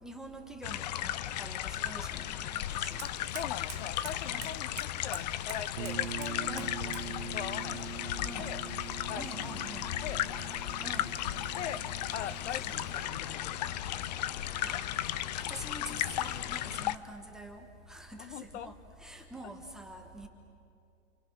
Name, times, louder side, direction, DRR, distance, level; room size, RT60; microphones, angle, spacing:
voice 1, 0.0-3.1 4.3-4.5 6.5-6.8 8.2-8.5 9.1-9.8 10.8-11.1 12.3-12.8 14.6-14.8 15.3-20.3, right 1 dB, ahead, 2 dB, 1.2 m, -46 dB
sound 1, 0.6-17.0, left 12 dB, 35° left, 0.5 m, -35 dB
Fire, 2.7-13.2, right 15 dB, 20° right, 0.6 m, -53 dB
voice 2, 3.0-8.1 8.4-8.6 9.1-9.2 10.0-10.2 11.6-11.8 12.1-13.8 18.2-18.7, left 9 dB, 70° left, 13 dB, 1.0 m, -42 dB
sound 2, 5.8-15.4, right 10 dB, 60° right, 0.8 m, -45 dB
28.5 x 25.0 x 6.1 m, 2.5 s
supercardioid pair, 165°, 35 cm